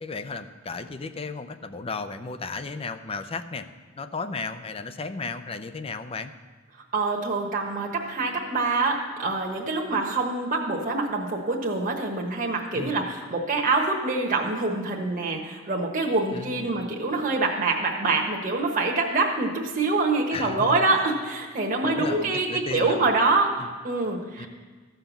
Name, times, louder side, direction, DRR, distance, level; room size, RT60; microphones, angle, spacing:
voice 1, 0.0-3.7 4.0-6.3 12.7-13.0 16.3-16.8 20.3-20.8 21.8-23.1 23.6-23.7 24.4-24.5, left 4 dB, 30° left, 10 dB, 0.5 m, -34 dB
voice 2, 6.9-24.5, right 3 dB, 45° right, 0 dB, 1.2 m, -25 dB
14.0 x 5.7 x 7.1 m, 1.4 s
head